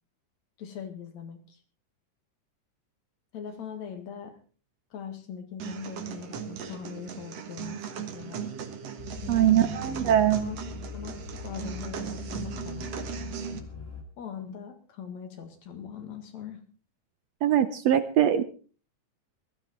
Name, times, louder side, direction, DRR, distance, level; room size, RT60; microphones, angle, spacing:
voice 1, 0.6-1.6 3.3-4.4 4.9-8.5 9.2-9.7 10.4-10.6 10.9-11.2 11.4-12.9 14.2-16.6, left 7 dB, 60° left, 6 dB, 3.0 m, -41 dB
sound 1, 5.6-13.6, right 7 dB, 55° right, 2.3 m, -38 dB
sound 2, 9.0-14.0, left 5 dB, 25° left, 2.3 m, -41 dB
voice 2, 9.3-10.4 17.4-18.4, right 11 dB, 75° right, 11 dB, 1.6 m, -22 dB
18.0 x 12.5 x 4.4 m, 0.39 s
omnidirectional pair, 3.8 m